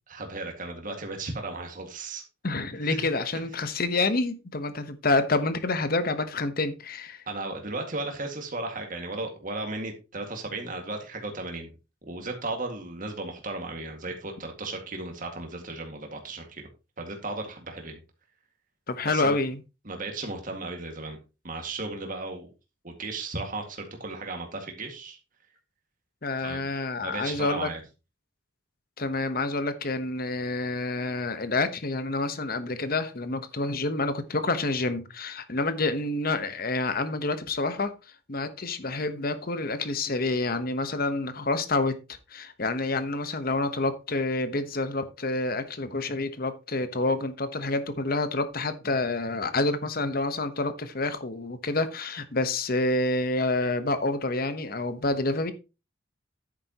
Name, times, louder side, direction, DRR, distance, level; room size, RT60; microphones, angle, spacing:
voice 1, 0.1-2.2 2.9-3.0 7.3-11.7 12.1-16.6 17.0-18.0 19.0-19.4 19.8-21.2 21.4-22.5 22.8-25.2 26.4-26.6 27.0-27.8, right 2 dB, 45° right, 2.0 m, -35 dB
voice 2, 2.4-7.2 18.9-19.6 26.2-27.7 29.0-37.9 38.3-42.0 42.3-55.5, left 2 dB, 50° left, 1.1 m, -28 dB
10.5 x 8.9 x 3.0 m
head